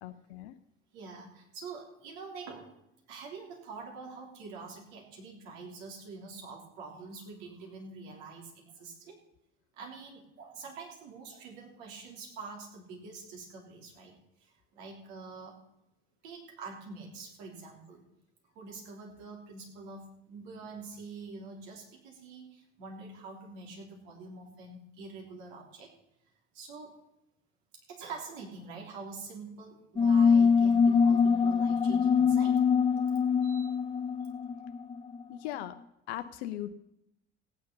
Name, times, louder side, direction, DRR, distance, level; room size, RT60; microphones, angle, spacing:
voice 1, 0.0-0.6 35.3-35.8 36.1-36.7, left 13 dB, 70° left, 9 dB, 0.7 m, -38 dB
voice 2, 0.9-2.7 3.1-9.2 9.8-14.1 14.4-15.5 16.2-18.0 18.6-25.9 26.5-26.9 27.9-32.6 33.4-33.8, right 4 dB, 70° right, 0 dB, 3.5 m, -46 dB
sound 1, 30.0-35.2, left 6 dB, 15° left, 0.5 m, -24 dB
15.5 x 9.5 x 5.5 m, 0.84 s
figure-of-eight pair, 55°, 34 cm